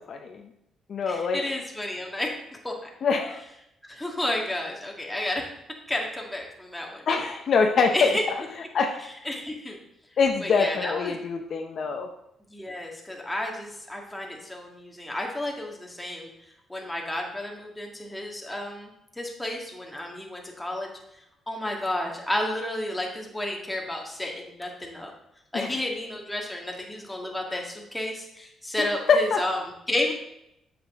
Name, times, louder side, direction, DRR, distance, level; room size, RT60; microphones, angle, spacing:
voice 1, 0.1-0.4 0.9-1.4 3.0-3.4 7.1-8.1 8.7-9.0 10.2-12.1 25.5-25.7 28.8-29.4, left 5 dB, 55° left, 4 dB, 0.7 m, -24 dB
voice 2, 1.1-2.3 2.6-2.9 3.8-5.5 5.9-7.0 7.7-8.2 9.0-9.8 10.4-11.2 12.5-16.3 16.7-20.9 21.5-25.1 25.5-30.1, left 1 dB, 10° left, 0 dB, 1.7 m, -31 dB
7.6 x 6.1 x 3.6 m, 0.80 s
cardioid pair, 90°, 0 cm